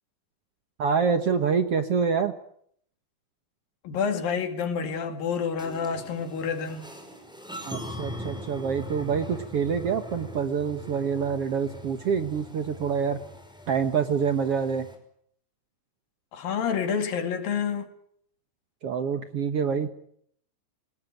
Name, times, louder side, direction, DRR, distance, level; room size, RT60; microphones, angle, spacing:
voice 1, 0.8-2.3 7.7-13.2 13.7-14.9 18.8-19.9, right 6 dB, 55° right, 1.8 m, -26 dB
voice 2, 3.8-6.9 16.3-17.9, left 6 dB, 75° left, 4.2 m, -28 dB
sound 1, 5.6-15.0, equal, ahead, 5.3 m, -41 dB
28.0 x 20.0 x 9.3 m
omnidirectional pair, 4.1 m